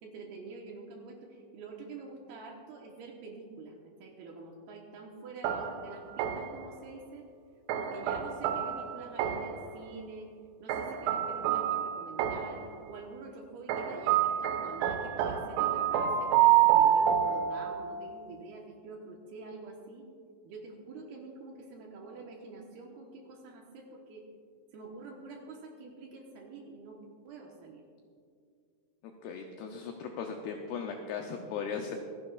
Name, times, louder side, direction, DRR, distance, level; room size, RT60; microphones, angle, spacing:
voice 1, 0.0-7.3 7.7-10.3 10.6-20.1 20.4-24.3 24.7-27.0 27.2-27.8, right 3 dB, 70° right, 0 dB, 2.6 m, -47 dB
sound 1, 5.4-6.7 7.7-9.7 10.7-12.7 13.7-18.0, right 10 dB, 90° right, 3.3 m, -28 dB
voice 2, 29.2-32.0, left 6 dB, 90° left, 3 dB, 2.2 m, -37 dB
26.5 x 10.5 x 2.4 m, 2.2 s
omnidirectional pair, 5.4 m